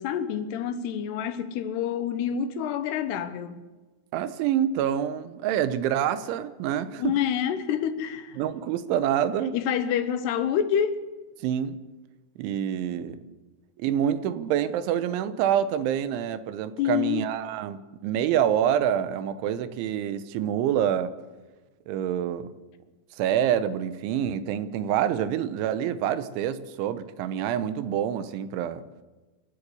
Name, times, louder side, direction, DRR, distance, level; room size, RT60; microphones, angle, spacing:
voice 1, 0.0-3.6 7.0-8.4 9.5-11.0 16.8-17.2, left 9 dB, 70° left, 2.9 m, -27 dB
voice 2, 4.1-7.2 8.4-9.6 11.4-11.8 12.4-13.2 13.8-21.1 21.9-22.5 23.2-28.8, right 10 dB, 85° right, 3.3 m, -26 dB
27.5 x 12.0 x 8.4 m
omnidirectional pair, 5.5 m